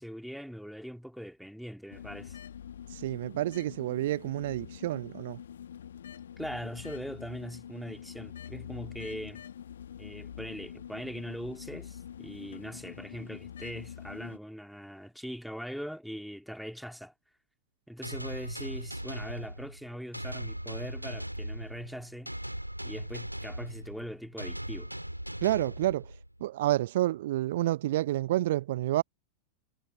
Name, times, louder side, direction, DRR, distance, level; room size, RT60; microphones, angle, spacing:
voice 1, 0.0-2.4 6.4-9.4 10.0-17.1 17.9-22.3 22.8-24.9, equal, ahead, 2.7 m, -41 dB
sound 1, 1.9-14.4, left 9 dB, 65° left, 1.2 m, -45 dB
voice 2, 2.9-5.4 25.4-26.1 26.4-29.0, right 15 dB, 55° right, 0.5 m, -29 dB
sound 2, 18.0-26.5, right 1 dB, 90° right, 3.5 m, -39 dB
figure-of-eight pair, 90°, 0 cm